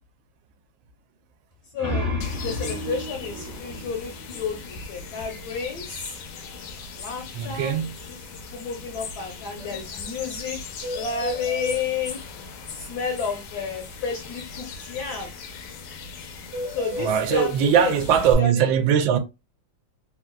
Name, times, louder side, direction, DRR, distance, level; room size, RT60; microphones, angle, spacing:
sound 1, 1.5-4.9, left 2 dB, 25° right, 0.6 m, -32 dB
voice 1, 1.7-2.1 2.4-6.2 7.0-8.2 8.5-12.2 12.7-15.3 16.7-17.9 18.4-18.6, left 5 dB, 65° left, 1.1 m, -31 dB
sound 2, 2.2-18.3, left 4 dB, 80° left, 1.5 m, -39 dB
voice 2, 7.3-8.0 17.0-19.2, right 8 dB, 75° right, 1.3 m, -21 dB
sound 3, 9.6-9.7 10.0-10.1 10.3-10.4 10.8-11.8 16.5-17.5, equal, 50° right, 1.3 m, -33 dB
3.7 x 2.3 x 2.2 m
omnidirectional pair, 2.2 m